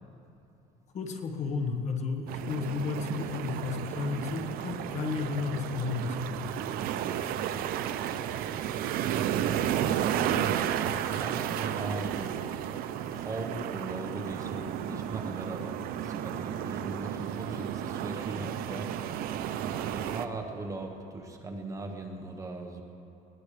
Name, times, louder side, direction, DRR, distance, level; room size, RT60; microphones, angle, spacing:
voice 1, 0.9-6.6, left 4 dB, 45° left, 4 dB, 1.5 m, -33 dB
sound 1, 2.3-20.3, right 10 dB, 65° right, 0.7 m, -32 dB
voice 2, 6.8-7.3 9.9-10.6 11.1-12.5 13.1-18.9 19.8-22.8, right 2 dB, 20° right, 2 dB, 1.3 m, -39 dB
20.5 x 20.0 x 3.4 m, 2.8 s
cardioid pair, 130°, 17 cm